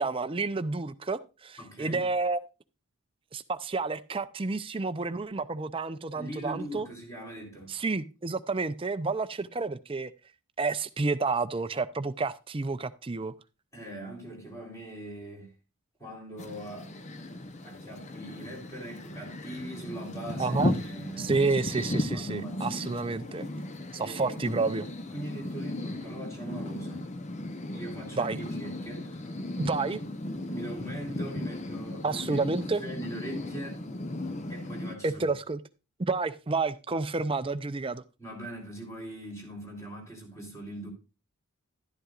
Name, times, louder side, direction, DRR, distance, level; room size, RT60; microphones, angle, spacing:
voice 1, 0.0-2.4 3.3-6.9 7.7-10.1 10.6-13.3 20.4-20.7 21.2-23.5 23.9-24.9 28.1-28.4 29.6-30.0 32.0-32.8 35.0-35.6 36.0-38.0, right 3 dB, 25° right, 0.5 m, -30 dB
voice 2, 1.6-2.1 6.1-7.7 13.7-15.5 16.0-16.9 17.6-21.4 22.1-22.9 24.0-24.4 25.1-27.1 27.7-29.4 30.5-33.9 34.5-35.2 38.2-40.9, right 1 dB, 15° left, 3.5 m, -41 dB
sound 1, 16.4-35.0, left 1 dB, 30° left, 0.7 m, -36 dB
11.5 x 11.0 x 2.4 m
head